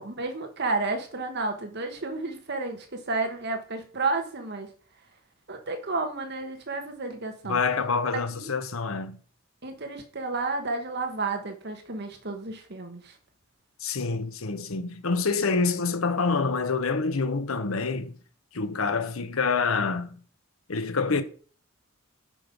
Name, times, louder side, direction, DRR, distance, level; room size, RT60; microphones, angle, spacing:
voice 1, 0.0-4.7 5.5-7.6 8.3-8.5 9.6-13.1, right 3 dB, 50° right, 1.4 m, -31 dB
voice 2, 7.5-9.2 13.8-18.2 18.5-20.2 20.7-21.2, left 4 dB, 80° left, 1.0 m, -27 dB
8.4 x 5.3 x 5.3 m
head